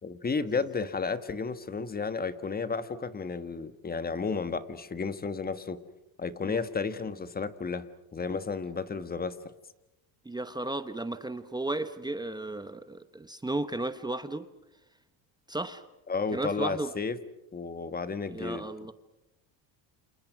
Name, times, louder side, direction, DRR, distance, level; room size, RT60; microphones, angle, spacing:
voice 1, 0.0-5.8 6.2-9.4 16.1-17.2 17.5-18.7, left 4 dB, 20° left, 12 dB, 1.5 m, -32 dB
voice 2, 10.2-14.5 15.5-15.8 16.3-16.9 18.3-18.9, right 2 dB, 10° right, 11 dB, 1.0 m, -34 dB
30.0 x 27.5 x 6.1 m, 0.92 s
cardioid pair, 125°, 43 cm